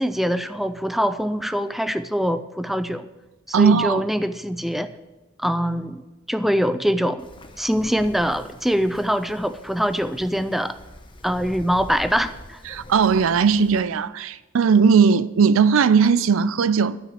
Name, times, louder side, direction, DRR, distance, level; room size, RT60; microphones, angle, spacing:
voice 1, 0.0-3.1 3.5-4.9 5.4-7.3 7.6-10.8 11.2-12.6, equal, ahead, 0.3 m, -23 dB
voice 2, 3.5-4.0 12.7-17.0, right 6 dB, 75° right, 0.4 m, -18 dB
Wind, 7.2-13.8, left 1 dB, 25° left, 0.9 m, -44 dB
12.5 x 5.9 x 7.0 m
head